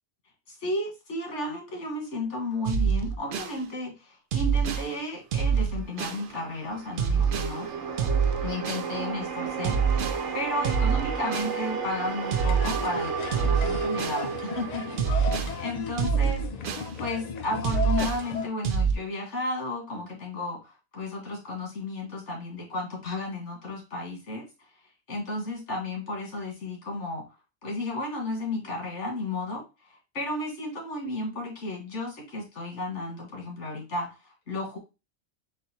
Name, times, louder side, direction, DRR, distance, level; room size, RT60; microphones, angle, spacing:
voice 1, 0.5-7.7 8.4-9.8 10.3-24.4 25.1-27.3 27.6-34.8, left 2 dB, 85° left, 0 dB, 1.8 m, -33 dB
sound 1, 2.7-3.6 4.3-4.9 5.3-6.2 7.0-7.6 8.0-8.9 9.6-10.2 10.6-11.6 12.3-12.9 13.3-14.2 15.0-15.5 16.0-16.9 17.6-18.2 18.6-18.9, right 6 dB, 60° right, 0.6 m, -26 dB
sound 2, 5.7-16.1, right 5 dB, 90° right, 1.1 m, -33 dB
sound 3, 12.4-18.5, left 5 dB, 55° left, 0.4 m, -35 dB
4.1 x 2.4 x 4.1 m, 0.29 s
omnidirectional pair, 1.2 m